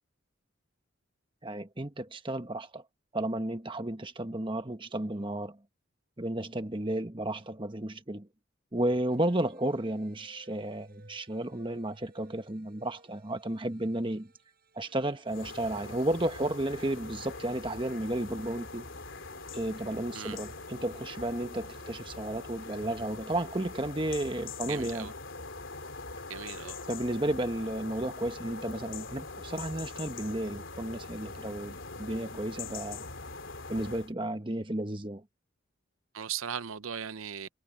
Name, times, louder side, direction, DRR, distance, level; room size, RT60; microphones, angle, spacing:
voice 1, 1.4-2.8 3.1-5.6 6.2-8.3 8.7-14.3 14.7-18.9 19.5-25.1 26.9-33.0 33.7-35.2, right 1 dB, 25° right, 1.2 m, -33 dB
sound 1, 9.1-22.9, right 2 dB, 45° right, 5.9 m, -61 dB
sound 2, 15.3-34.1, left 3 dB, 60° left, 3.8 m, -43 dB
voice 2, 24.7-25.1 26.3-26.8 36.1-37.5, right 8 dB, 75° right, 0.7 m, -38 dB
head